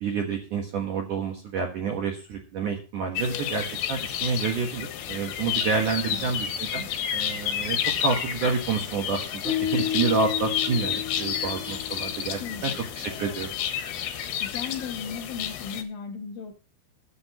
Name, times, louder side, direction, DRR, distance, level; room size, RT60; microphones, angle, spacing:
voice 1, 0.0-6.9 7.1-12.7 13.0-13.5, right 5 dB, 65° right, 1 dB, 2.0 m, -29 dB
sound 1, 3.2-15.8, left 9 dB, 70° left, 3.3 m, -31 dB
voice 2, 6.1-6.4 12.4-12.8 14.4-16.5, left 6 dB, 85° left, 2 dB, 2.0 m, -36 dB
sound 2, 9.4-12.6, left 10 dB, 40° left, 3.0 m, -32 dB
21.5 x 7.9 x 3.1 m, 0.35 s
omnidirectional pair, 5.9 m